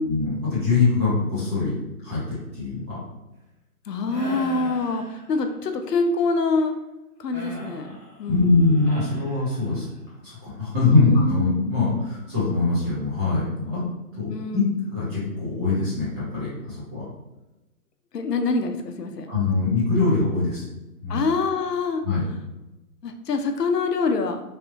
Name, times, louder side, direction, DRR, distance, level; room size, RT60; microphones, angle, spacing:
voice 1, 0.0-1.7 2.0-3.0 8.3-9.8 10.2-13.8 14.2-14.6 14.9-17.0 19.3-20.6 21.0-21.2 22.0-22.2, left 3 dB, 15° right, -9 dB, 1.0 m, -23 dB
voice 2, 3.9-6.8 7.2-8.6 10.8-11.5 14.3-14.6 18.1-19.3 21.1-22.0 23.0-24.4, left 3 dB, 85° left, 6 dB, 0.7 m, -25 dB
sound 1, 4.1-5.6 7.3-10.0, left 1 dB, 5° left, 0.7 m, -40 dB
3.2 x 2.7 x 2.8 m, 1.0 s
hypercardioid pair, 155°, 47 cm